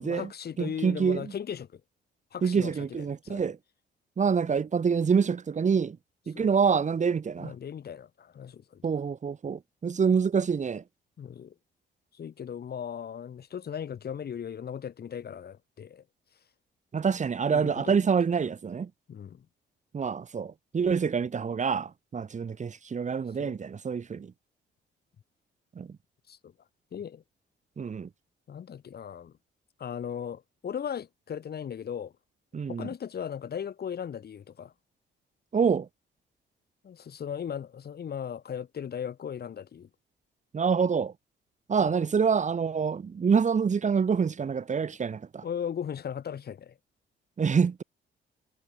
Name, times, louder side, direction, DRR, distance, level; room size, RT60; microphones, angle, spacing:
voice 1, 0.0-1.8 2.3-3.4 4.5-4.6 6.3-6.5 7.4-8.8 11.2-11.5 12.1-16.0 17.5-18.0 19.1-19.4 23.4-23.6 26.3-26.5 26.9-27.2 28.5-29.3 29.8-32.1 32.7-34.7 36.8-39.9 41.8-41.9 45.4-46.7, left 8 dB, 55° left, 3.1 m, -37 dB
voice 2, 0.6-1.3 2.4-3.6 4.2-6.0 6.3-7.5 8.8-10.8 16.9-18.9 19.9-24.3 25.7-25.9 27.8-28.1 32.5-32.9 35.5-35.9 40.5-41.1 41.7-45.4 47.4-47.8, right 6 dB, 35° right, 1.6 m, -26 dB
cardioid pair, 90°, 20 cm